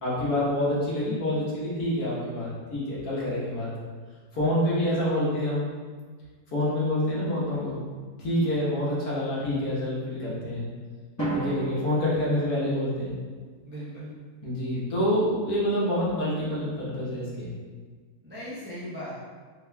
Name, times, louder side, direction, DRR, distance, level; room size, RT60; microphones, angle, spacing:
voice 1, 0.0-3.7 4.3-5.7 6.5-7.8 8.2-10.7 11.3-13.1 14.4-17.5, left 1 dB, 75° left, -8 dB, 1.7 m, -27 dB
Drum, 11.2-13.2, right 2 dB, 15° left, 0.7 m, -33 dB
voice 2, 13.6-14.1 18.2-19.1, equal, 15° right, -8 dB, 0.4 m, -38 dB
4.2 x 3.9 x 2.3 m, 1.5 s
omnidirectional pair, 1.6 m